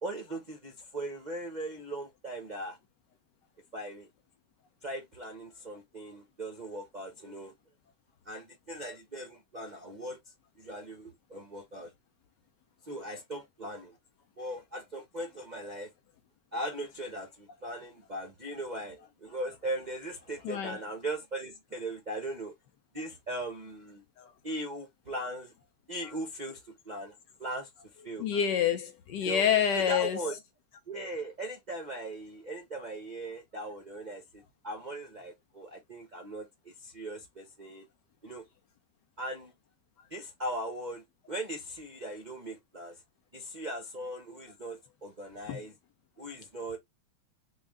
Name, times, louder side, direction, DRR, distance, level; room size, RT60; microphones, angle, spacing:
voice 1, 0.0-2.8 3.7-4.1 4.8-7.5 8.3-10.2 10.6-11.9 12.8-14.0 14.4-15.9 16.5-22.5 22.9-24.0 24.4-25.5 25.9-27.7 28.0-28.3 29.2-29.4 29.7-30.4 30.9-37.8 38.2-38.5 39.2-39.5 40.1-43.0 43.3-45.7 46.2-46.8, right 1 dB, 85° right, 0.4 m, -39 dB
voice 2, 20.4-20.8 24.2-24.3 28.2-30.2 45.5-45.6, left 8 dB, 70° left, 1.1 m, -27 dB
4.6 x 2.2 x 3.5 m
omnidirectional pair, 2.3 m